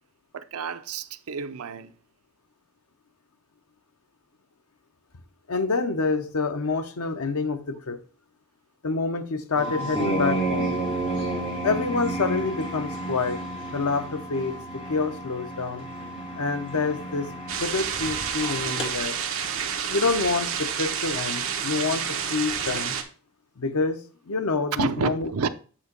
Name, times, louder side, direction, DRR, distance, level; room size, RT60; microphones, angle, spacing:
voice 1, 0.3-1.9 24.7-25.5, right 5 dB, 80° right, 0.5 m, -29 dB
voice 2, 5.5-8.0 8.8-10.8 11.6-13.4 13.7-15.9 16.4-17.3 17.6-19.2 19.9-23.0 23.6-24.0 24.3-25.3, left 4 dB, 85° left, 0.7 m, -27 dB
sound 1, 9.5-18.9, right 2 dB, 25° left, 1.7 m, -31 dB
sound 2, 17.5-23.0, right 7 dB, 65° right, 1.0 m, -29 dB
8.5 x 2.9 x 5.2 m
head